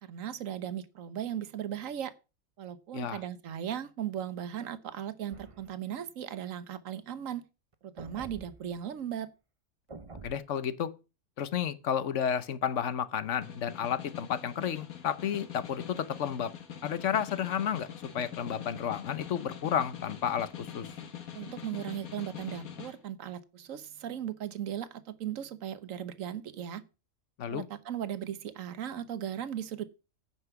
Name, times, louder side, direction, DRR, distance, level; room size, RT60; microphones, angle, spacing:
voice 1, 0.0-2.1 2.6-7.4 7.8-9.3 21.3-26.8 27.5-29.8, right 10 dB, 70° right, 1.3 m, -37 dB
sound 1, 5.3-5.7 7.7-8.7 9.9-10.3, right 3 dB, 30° right, 0.8 m, -47 dB
voice 2, 10.2-10.9 11.4-16.5 16.8-17.9 18.1-20.9 27.4-27.6, left 8 dB, 60° left, 1.1 m, -31 dB
Snare drum, 13.3-23.0, left 8 dB, 80° left, 1.8 m, -44 dB
9.4 x 5.9 x 6.9 m
omnidirectional pair, 1.5 m